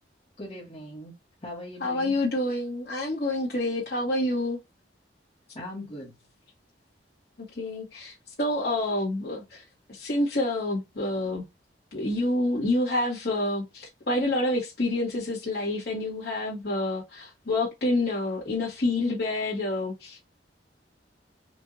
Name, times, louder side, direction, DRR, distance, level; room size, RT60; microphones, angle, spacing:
voice 1, 0.4-1.1 1.4-2.2 5.5-6.1, left 1 dB, 35° left, 1.4 m, -40 dB
voice 2, 1.8-4.6 7.6-9.6 9.9-11.4 11.9-20.2, left 1 dB, 60° left, 1.6 m, -28 dB
4.5 x 2.6 x 2.7 m
head